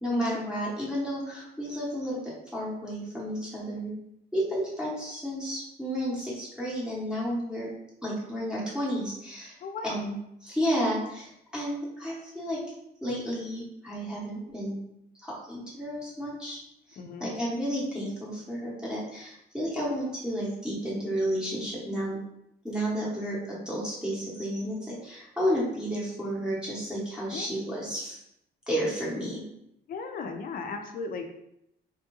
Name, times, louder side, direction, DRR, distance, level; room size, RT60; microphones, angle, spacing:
voice 1, 0.0-3.9 4.3-7.7 8.0-9.5 9.8-10.1 10.4-12.6 13.0-14.8 15.2-16.6 17.2-22.2 22.6-28.2 28.7-29.4, equal, 5° right, -6 dB, 0.8 m, -32 dB
voice 2, 9.6-10.0 17.0-17.3 27.3-27.5 29.9-31.2, left 4 dB, 55° left, 5 dB, 0.4 m, -36 dB
3.6 x 2.3 x 2.9 m, 0.80 s
wide cardioid pair, 165°, 18 cm